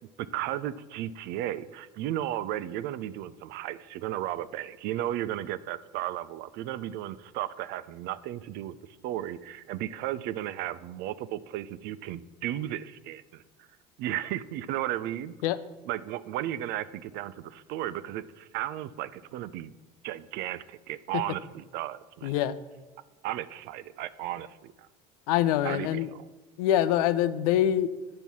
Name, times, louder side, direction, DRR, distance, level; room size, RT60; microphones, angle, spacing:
voice 1, 0.3-8.8 9.0-13.4 14.0-15.3 15.8-19.7 20.0-22.3 23.2-24.7 25.6-26.2, right 13 dB, 55° right, 16 dB, 0.5 m, -34 dB
voice 2, 22.2-22.5 25.3-26.1 26.6-27.9, left 11 dB, 70° left, 14 dB, 0.6 m, -24 dB
8.8 x 5.3 x 6.0 m, 1.3 s
hypercardioid pair, 70°, 20 cm